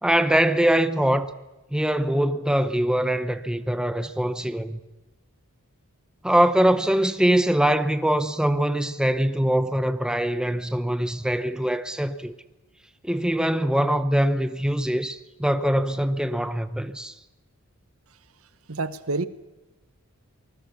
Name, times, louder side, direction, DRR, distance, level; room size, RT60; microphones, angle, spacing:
voice 1, 0.0-1.3 1.7-4.8 6.2-12.3 13.0-17.1, right 1 dB, 5° right, 0.8 m, -23 dB
voice 2, 18.7-19.3, right 3 dB, 70° right, 1.0 m, -27 dB
25.0 x 20.5 x 7.1 m
head